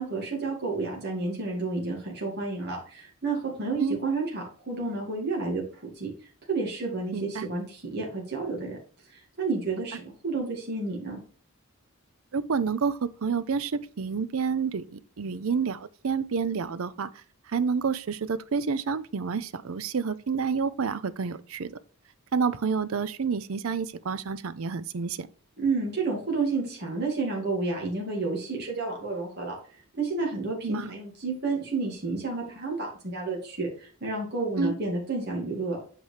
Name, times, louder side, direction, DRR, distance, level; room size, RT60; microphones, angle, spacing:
voice 1, 0.0-5.6 6.0-6.1 6.5-8.8 9.1-11.2 25.6-29.6 30.0-35.8, right 3 dB, 50° right, 2.1 m, -30 dB
voice 2, 7.1-7.5 12.3-21.7 22.3-25.3 30.6-30.9 34.6-34.8, right 5 dB, 70° right, 0.5 m, -29 dB
8.0 x 4.7 x 3.3 m
head